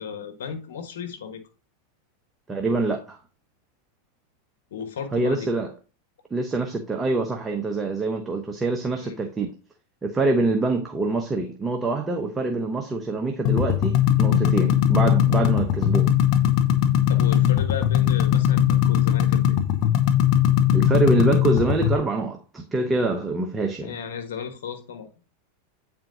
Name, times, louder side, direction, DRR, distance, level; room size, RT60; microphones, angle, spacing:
voice 1, 0.0-1.4 4.7-5.5 9.0-9.2 17.1-19.6 23.8-25.1, left 6 dB, 80° left, 1.4 m, -35 dB
voice 2, 2.5-3.2 5.1-5.7 6.3-9.5 10.0-16.1 20.7-23.9, right 3 dB, 15° right, 0.9 m, -25 dB
sound 1, 13.4-21.9, left 10 dB, 50° left, 0.8 m, -20 dB
8.8 x 4.4 x 2.7 m
hypercardioid pair, 100°, 0 cm